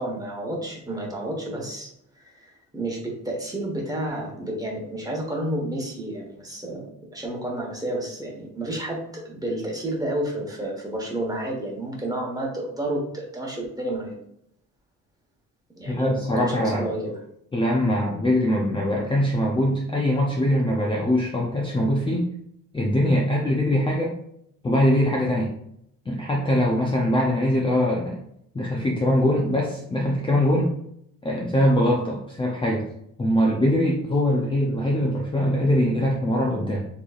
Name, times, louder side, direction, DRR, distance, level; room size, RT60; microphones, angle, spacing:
voice 1, 0.0-1.9 2.2-6.8 7.1-14.2 15.8-17.2, right 1 dB, 10° right, -1 dB, 1.3 m, -30 dB
voice 2, 15.8-16.9 17.5-22.3 22.7-24.1 24.6-25.6 26.1-28.2 28.5-30.7 31.2-32.9 33.2-36.9, equal, 15° left, -2 dB, 0.6 m, -22 dB
6.6 x 3.2 x 2.4 m, 0.74 s
cardioid pair, 120°, 32 cm